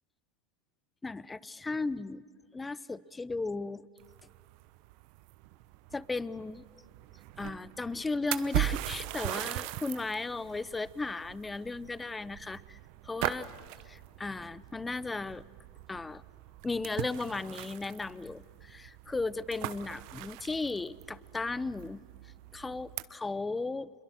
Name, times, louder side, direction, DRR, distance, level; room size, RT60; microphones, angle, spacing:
voice 1, 1.0-2.3 2.5-3.9 5.9-6.6 7.4-12.8 13.1-13.5 13.9-15.4 15.9-16.2 16.6-22.0 22.5-23.9, left 3 dB, 15° left, 20 dB, 0.6 m, -35 dB
sound 1, 4.0-23.0, right 17 dB, 60° right, 0.9 m, -40 dB
26.5 x 22.0 x 6.4 m, 2.2 s
hypercardioid pair, 95°, 0 cm